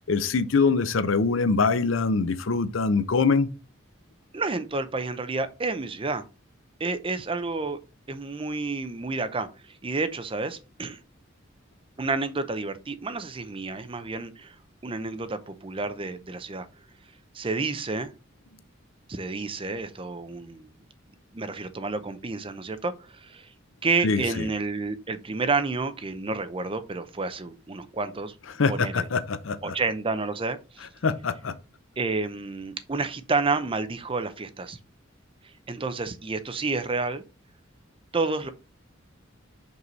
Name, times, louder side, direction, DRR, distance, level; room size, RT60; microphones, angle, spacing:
voice 1, 0.1-3.5 24.0-24.5 28.6-29.8 31.0-31.5, left 4 dB, 75° left, 0.6 m, -24 dB
voice 2, 4.3-6.2 6.8-7.8 8.1-9.5 9.8-11.0 12.0-14.6 14.8-16.7 17.3-18.1 19.1-20.7 21.3-23.5 23.8-28.3 28.7-29.1 29.6-30.9 32.0-34.8 35.7-37.2 38.1-38.5, right 3 dB, 25° right, 0.6 m, -30 dB
5.4 x 4.6 x 4.1 m
head